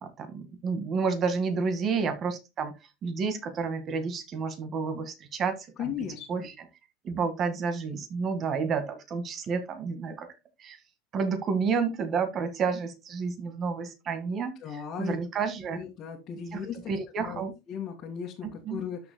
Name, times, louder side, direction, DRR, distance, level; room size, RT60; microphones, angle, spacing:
voice 1, 0.0-2.7 3.0-6.7 7.0-10.3 10.6-10.8 11.1-15.8 16.5-17.6 18.4-18.8, right 5 dB, 30° right, 1.9 m, -30 dB
voice 2, 5.8-6.5 14.6-15.2 15.7-16.9 17.2-17.4 17.7-19.0, left 7 dB, 35° left, 2.1 m, -36 dB
13.0 x 6.9 x 2.2 m
supercardioid pair, 140°, 0 cm